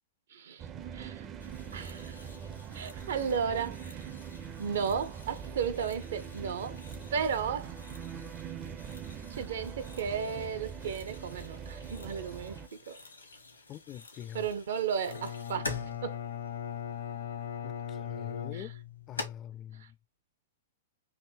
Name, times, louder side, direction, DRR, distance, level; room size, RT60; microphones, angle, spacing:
voice 1, 0.3-0.7 0.9-1.3 1.7-2.3 2.7-4.1 4.6-6.8 7.1-7.7 9.3-13.0 14.3-16.2 18.5-18.7 19.8-19.9, right 7 dB, 65° right, 0.8 m, -34 dB
sound 1, 0.6-12.7, right 7 dB, 30° right, 0.5 m, -43 dB
sound 2, 1.4-19.2, left 3 dB, 85° left, 1.3 m, -48 dB
voice 2, 13.7-14.4 17.6-18.7 19.1-19.8, left 11 dB, 30° left, 0.4 m, -45 dB
Bowed string instrument, 15.1-19.3, left 9 dB, 70° left, 0.8 m, -39 dB
3.5 x 2.7 x 4.4 m
figure-of-eight pair, 110°, 0 cm